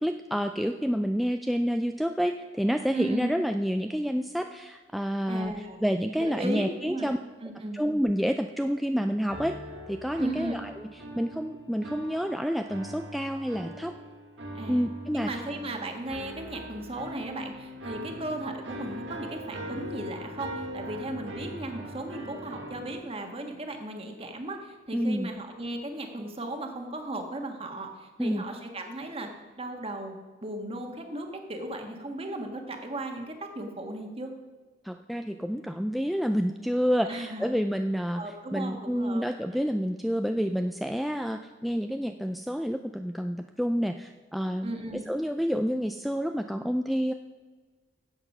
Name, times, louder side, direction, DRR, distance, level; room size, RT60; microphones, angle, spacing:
voice 1, 0.0-5.5 5.8-7.2 7.7-9.5 9.9-10.9 11.2-13.9 14.7-15.3 24.9-25.3 28.2-28.4 34.8-38.2 38.5-47.1, equal, ahead, 5 dB, 0.3 m, -28 dB
voice 2, 2.9-3.4 5.3-5.8 6.2-7.1 7.4-7.8 10.2-10.6 14.5-14.8 15.1-29.3 29.6-30.2 30.4-34.3 37.0-37.5 38.2-39.2 39.5-39.7 44.6-45.1, right 1 dB, 35° right, 4 dB, 1.5 m, -36 dB
sound 1, 9.3-23.0, equal, 85° right, 1.7 m, -41 dB
13.0 x 8.0 x 5.4 m, 1.4 s
head